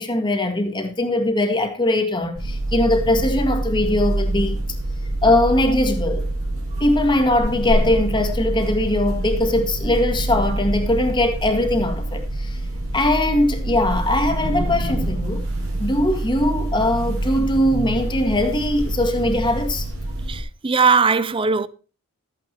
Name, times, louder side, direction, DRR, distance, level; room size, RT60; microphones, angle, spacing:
voice 1, 0.0-4.6 5.2-6.2 6.8-12.6 12.9-15.4 15.8-19.9, left 1 dB, 20° left, 1.8 m, -21 dB
sound 1, 2.4-20.4, right 1 dB, 80° right, 4.5 m, -26 dB
voice 2, 20.3-21.7, right 5 dB, 25° right, 0.6 m, -19 dB
13.5 x 9.1 x 3.0 m
head